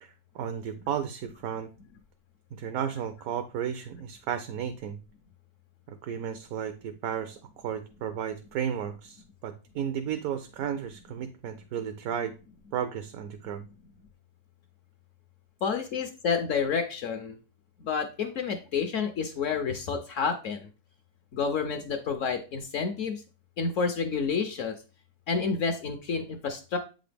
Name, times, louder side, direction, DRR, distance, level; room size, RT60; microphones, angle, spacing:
voice 1, 0.0-1.7 2.5-5.0 5.9-12.4 12.7-13.6, right 8 dB, 70° right, 8 dB, 1.0 m, -34 dB
voice 2, 15.6-17.4 17.8-20.6 21.3-23.2 23.6-24.8 25.3-26.8, left 5 dB, 65° left, 6 dB, 0.9 m, -29 dB
7.9 x 3.9 x 3.3 m, 0.33 s
omnidirectional pair, 1.6 m